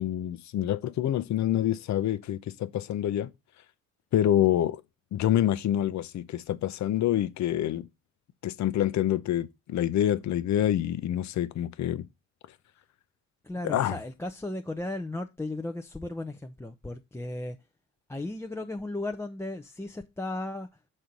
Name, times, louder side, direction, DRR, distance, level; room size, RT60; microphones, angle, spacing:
voice 1, 0.0-3.3 4.1-4.8 5.1-7.9 8.4-12.1 13.6-14.0, left 12 dB, 70° left, 0.7 m, -27 dB
voice 2, 13.4-17.6 18.1-20.7, left 2 dB, 10° left, 0.6 m, -35 dB
6.3 x 4.3 x 5.2 m
cardioid pair, 90°, 30 cm